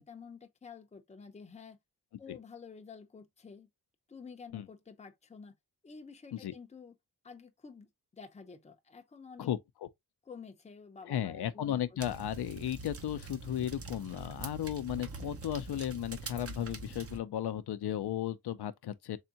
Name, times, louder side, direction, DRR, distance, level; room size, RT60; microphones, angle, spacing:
voice 1, 0.0-1.8 2.2-3.7 4.1-5.5 5.8-7.0 7.2-9.5 10.3-11.8, left 5 dB, 20° left, 0.5 m, -50 dB
voice 2, 9.4-9.9 11.0-19.2, left 11 dB, 80° left, 0.5 m, -35 dB
sound 1, 12.0-17.2, right 4 dB, 35° right, 0.6 m, -44 dB
3.6 x 3.5 x 2.8 m
wide cardioid pair, 140°, 39 cm